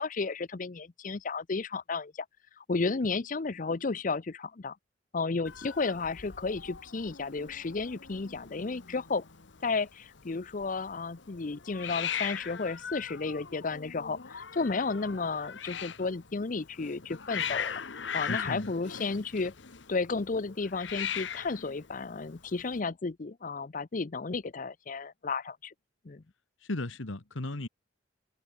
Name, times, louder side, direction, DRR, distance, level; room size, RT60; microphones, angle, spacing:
voice 1, 0.0-2.3 2.6-4.8 5.1-9.2 9.6-17.8 18.1-19.5 19.9-25.7 26.0-26.2, left 4 dB, 40° left, 0.6 m, -33 dB
Hiss, 5.4-22.8, left 8 dB, 65° left, 1.2 m, -40 dB
voice 2, 18.3-18.7 26.6-27.7, left 2 dB, 80° left, 1.6 m, -35 dB
head